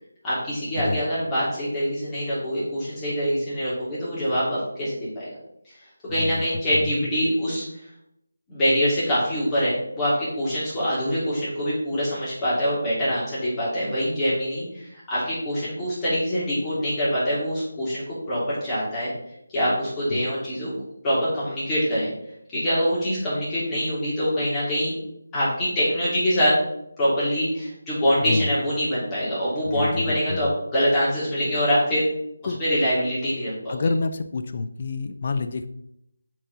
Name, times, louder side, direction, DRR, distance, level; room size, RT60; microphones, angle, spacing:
voice 1, 0.2-5.3 6.1-7.6 8.5-19.1 19.5-20.7 21.0-22.1 22.5-24.9 25.3-26.6 27.0-32.0 32.4-33.8, equal, 10° left, -10 dB, 2.9 m, -24 dB
voice 2, 29.7-30.5 32.5-32.6 33.7-35.7, left 3 dB, 40° left, 9 dB, 0.5 m, -28 dB
7.5 x 4.7 x 4.0 m, 0.78 s
figure-of-eight pair, 165°, 0 cm